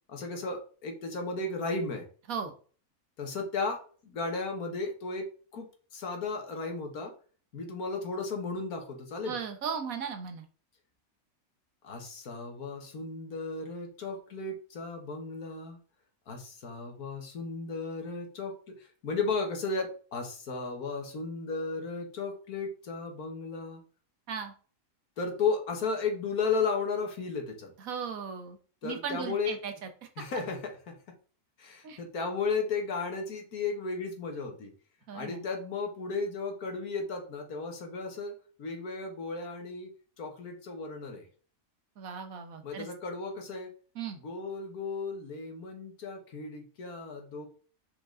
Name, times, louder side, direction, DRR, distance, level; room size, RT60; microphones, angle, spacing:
voice 1, 0.1-2.1 3.2-5.7 5.9-7.1 7.5-9.3 11.8-15.8 16.3-23.8 25.2-27.7 28.8-29.5 30.2-30.6 30.9-31.0 31.6-34.7 35.1-38.3 38.6-39.9 40.2-41.3 42.6-43.7 44.2-47.5, left 4 dB, 90° left, 3 dB, 2.0 m, -34 dB
voice 2, 9.2-10.4 24.3-24.5 27.8-28.6 28.8-29.9 31.8-32.0 35.1-35.4 42.0-42.9 43.9-44.2, right 6 dB, 70° right, 7 dB, 1.5 m, -37 dB
6.0 x 5.3 x 3.8 m, 0.41 s
omnidirectional pair, 1.5 m